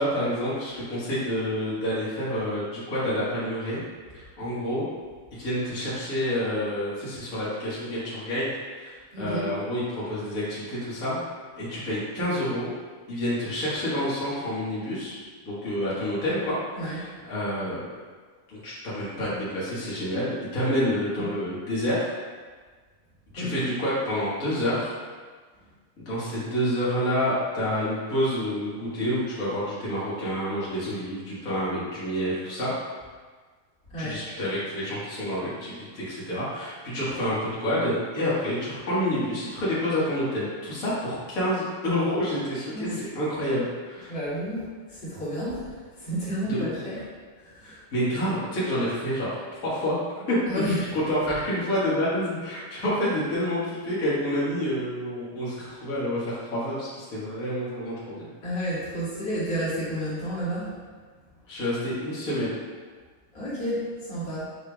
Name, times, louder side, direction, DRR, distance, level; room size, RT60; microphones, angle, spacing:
voice 1, 0.0-3.8 4.1-4.8 5.3-8.5 8.8-11.2 11.6-12.7 13.1-15.2 15.4-16.5 16.8-17.8 18.5-22.1 23.3-24.9 26.0-32.7 34.0-44.1 46.5-46.6 47.6-50.0 50.3-50.7 50.9-58.2 61.5-62.5, equal, 75° left, -10 dB, 0.7 m, -28 dB
voice 2, 9.1-9.5 16.8-17.0 21.2-21.3 23.3-23.7 33.9-34.2 42.7-43.0 44.1-47.0 47.4-47.8 50.5-50.9 58.4-60.8 63.3-64.4, equal, 40° left, -10 dB, 1.7 m, -31 dB
8.0 x 5.0 x 2.4 m, 1.5 s
omnidirectional pair, 4.4 m